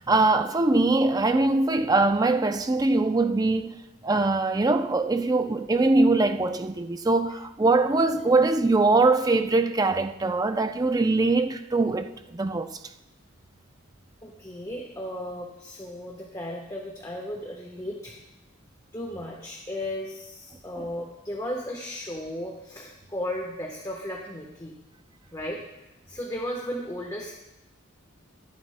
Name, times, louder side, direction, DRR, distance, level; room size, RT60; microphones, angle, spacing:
voice 1, 0.0-3.8 4.0-12.8, right 3 dB, 20° right, 0.4 m, -22 dB
voice 2, 14.2-18.2 18.9-24.7 25.3-25.6 26.1-27.3, left 1 dB, 15° left, 1.1 m, -35 dB
21.5 x 11.0 x 2.2 m
head